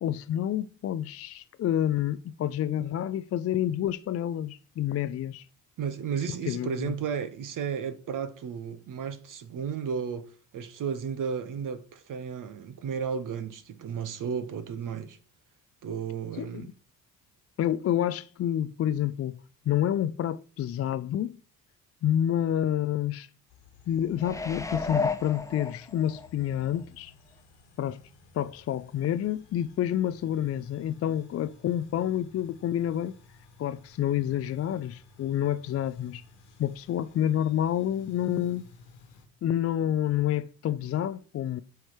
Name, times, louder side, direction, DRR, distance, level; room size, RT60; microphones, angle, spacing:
voice 1, 0.0-5.5 6.5-6.9 16.4-16.7 17.6-19.4 19.7-21.3 22.0-23.3 23.9-27.1 27.8-28.0 28.3-33.1 33.6-36.2 36.6-38.6 39.4-41.6, left 11 dB, 40° left, 0.4 m, -28 dB
voice 2, 5.8-15.2 15.8-16.7, right 6 dB, 50° right, 0.8 m, -33 dB
sound 1, 23.5-39.2, left 4 dB, 80° left, 1.7 m, -56 dB
sound 2, 24.2-26.3 26.8-26.9, left 3 dB, 10° left, 0.7 m, -32 dB
9.2 x 3.3 x 4.5 m
hypercardioid pair, 55°, 42 cm